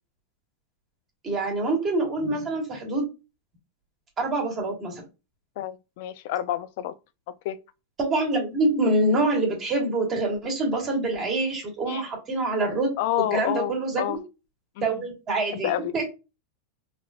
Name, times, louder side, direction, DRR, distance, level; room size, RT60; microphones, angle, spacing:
voice 1, 1.2-3.1 4.2-5.0 8.0-12.9 13.3-14.2 14.8-16.0, right 2 dB, 30° right, 1.4 m, -25 dB
voice 2, 5.6-6.9 7.4-7.6 11.9-12.1 13.0-14.2 14.8-15.0 15.5-15.9, left 12 dB, 60° left, 0.4 m, -29 dB
3.3 x 2.5 x 2.4 m
supercardioid pair, 145°, 0 cm